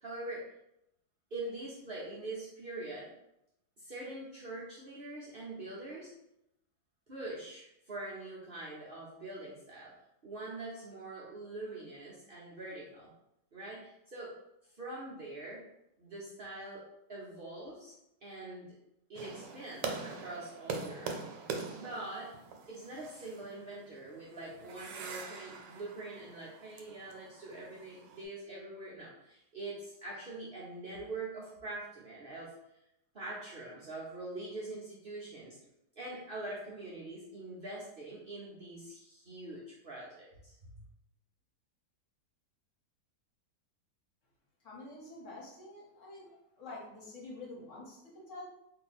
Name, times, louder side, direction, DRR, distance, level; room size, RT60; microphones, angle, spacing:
voice 1, 0.0-0.4 1.3-3.1 3.8-6.1 7.1-9.9 10.2-13.1 13.5-14.3 14.7-15.6 16.0-16.8 17.1-17.9 18.2-18.7 19.1-21.4 21.7-22.3 22.7-32.5 33.1-35.6 35.9-40.6, right 2 dB, 60° right, -7 dB, 0.5 m, -44 dB
sound 1, 19.2-28.2, right 4 dB, 85° right, 1.3 m, -43 dB
voice 2, 44.6-48.4, left 2 dB, 50° left, -4 dB, 1.2 m, -48 dB
2.7 x 2.7 x 4.0 m, 0.83 s
omnidirectional pair, 1.9 m